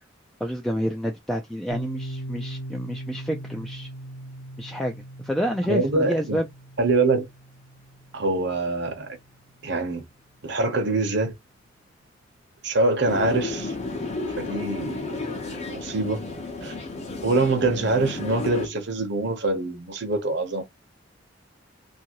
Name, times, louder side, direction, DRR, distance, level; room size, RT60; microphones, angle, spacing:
voice 1, 0.4-3.9 4.6-6.5, equal, ahead, 0.3 m, -29 dB
Piano, 1.7-9.1, right 1 dB, 75° left, 0.8 m, -39 dB
voice 2, 5.7-6.4 6.8-7.3 8.1-9.1 9.6-10.0 10.4-11.3 12.6-13.8 14.4-16.2 16.6-16.7 17.2-20.6, right 2 dB, 65° right, 0.9 m, -24 dB
sound 1, 13.1-18.7, left 3 dB, 35° left, 0.8 m, -32 dB
2.7 x 2.6 x 2.8 m
head